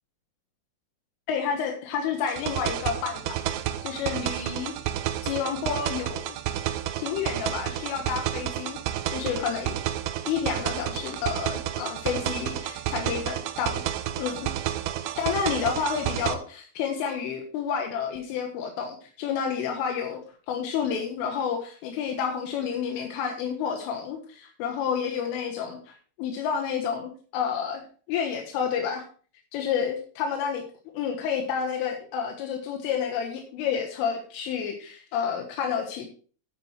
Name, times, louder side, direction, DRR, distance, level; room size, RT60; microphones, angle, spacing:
voice 1, 1.3-3.2 3.8-4.7 5.2-6.4 7.0-8.8 9.1-9.8 10.3-13.8 14.2-14.5 15.2-20.2 20.5-25.9 26.2-27.8 28.1-29.0 29.5-30.6 30.9-36.1, left 7 dB, 80° left, 3 dB, 3.9 m, -30 dB
sound 1, 2.3-16.3, right 12 dB, 90° right, 3.5 m, -31 dB
13.0 x 9.0 x 3.2 m, 0.40 s
omnidirectional pair, 5.8 m